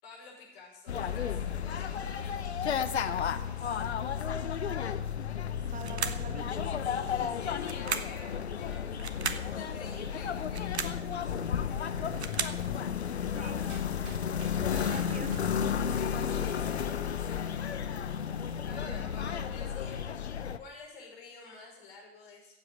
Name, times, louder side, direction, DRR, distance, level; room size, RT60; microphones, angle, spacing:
voice 1, 0.0-3.9 6.8-8.9 9.5-12.2 14.1-15.0 15.9-20.3 20.6-22.6, left 4 dB, 65° left, -1 dB, 5.6 m, -50 dB
sound 1, 0.9-20.6, left 8 dB, 80° left, 0.8 m, -33 dB
voice 2, 5.6-6.6 13.2-13.7 14.8-15.7 18.9-19.1 19.4-19.5, right 5 dB, 25° right, 8 dB, 1.3 m, -45 dB
sound 2, 5.8-6.3 7.6-8.2 9.0-9.5 10.4-11.0 11.9-12.6, right 6 dB, 80° right, 1.0 m, -35 dB
Run, 12.5-18.1, right 4 dB, 40° right, 3.0 m, -54 dB
15.5 x 7.8 x 8.0 m, 0.93 s
figure-of-eight pair, 75°, 32 cm